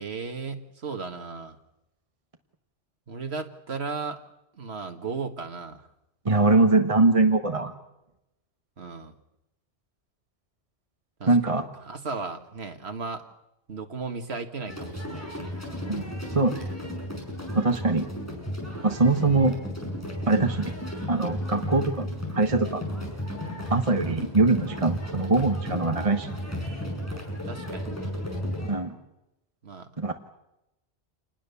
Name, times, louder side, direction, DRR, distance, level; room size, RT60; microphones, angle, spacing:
voice 1, 0.0-1.6 3.1-4.2 4.5-5.9 8.8-9.1 11.2-13.2 13.7-15.5 27.4-28.1 29.6-29.9, right 4 dB, 70° right, 6 dB, 1.9 m, -35 dB
voice 2, 6.2-7.7 11.3-11.7 15.9-16.7 17.5-18.1 18.8-19.5 20.3-20.7 21.1-22.1 22.3-22.8 23.7-26.3 28.7-29.0 30.0-30.1, right 3 dB, 30° right, 5 dB, 1.3 m, -22 dB
sound 1, 14.7-28.7, equal, 15° left, 6.7 m, -34 dB
27.5 x 20.5 x 7.0 m, 0.89 s
omnidirectional pair, 1.1 m